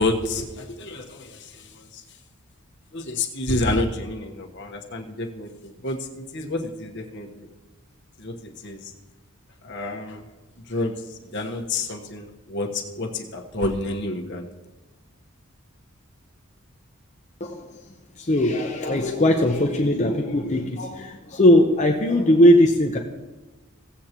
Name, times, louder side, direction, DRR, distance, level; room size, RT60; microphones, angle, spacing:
voice 1, 0.0-1.7 2.9-7.5 8.2-8.8 9.6-10.2 10.7-11.0 11.3-14.4, left 2 dB, 55° left, 2 dB, 1.2 m, -29 dB
voice 2, 17.4-17.8 18.2-23.0, left 1 dB, 35° left, 2 dB, 0.7 m, -19 dB
17.0 x 8.0 x 3.0 m, 1.1 s
head